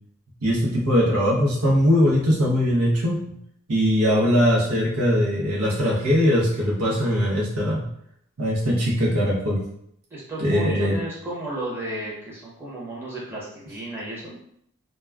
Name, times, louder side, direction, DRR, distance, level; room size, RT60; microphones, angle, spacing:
voice 1, 0.4-3.2 3.7-7.8 8.4-9.6 10.4-11.0, equal, 75° right, -4 dB, 0.8 m, -21 dB
voice 2, 10.1-14.4, right 1 dB, 10° right, -7 dB, 0.8 m, -33 dB
2.2 x 2.2 x 3.4 m, 0.70 s
head